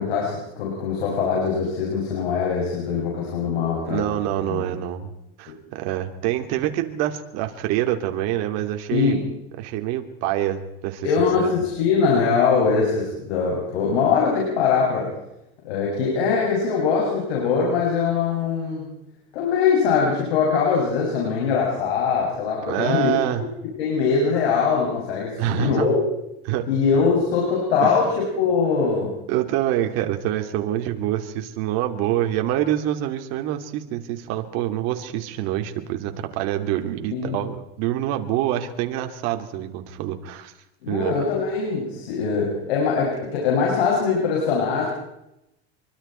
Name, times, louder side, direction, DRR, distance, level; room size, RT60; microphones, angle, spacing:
voice 1, 0.0-4.0 4.5-4.6 8.9-9.2 11.0-15.1 15.6-18.9 19.3-23.1 23.8-26.0 26.7-29.1 37.1-37.4 40.8-44.9, left 5 dB, 90° left, -3 dB, 7.1 m, -22 dB
voice 2, 3.9-5.1 5.4-9.2 9.6-11.5 22.6-23.5 25.4-25.9 26.4-26.7 27.8-28.0 29.3-40.5 40.9-41.2, right 12 dB, 55° right, 5 dB, 2.8 m, -26 dB
25.0 x 24.0 x 4.5 m, 0.87 s
supercardioid pair, 130°, 31 cm